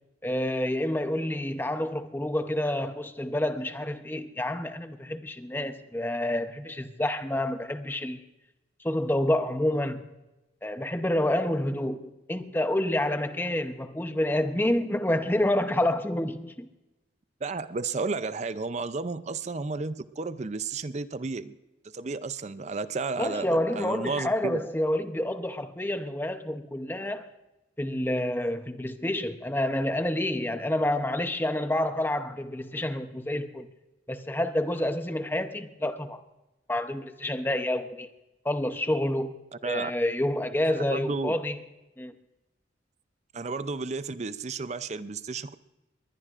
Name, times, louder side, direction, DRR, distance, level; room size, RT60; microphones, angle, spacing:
voice 1, 0.2-8.2 8.8-10.0 10.6-16.7 23.2-27.3 27.8-33.7 34.1-36.2 36.7-38.1 38.4-39.3 39.6-41.6 42.0-42.1, left 1 dB, 10° left, 0.7 m, -28 dB
voice 2, 17.4-21.6 21.9-24.6 39.6-39.9 40.9-41.3 43.3-45.5, right 4 dB, 35° right, 0.5 m, -32 dB
21.0 x 20.0 x 2.5 m
head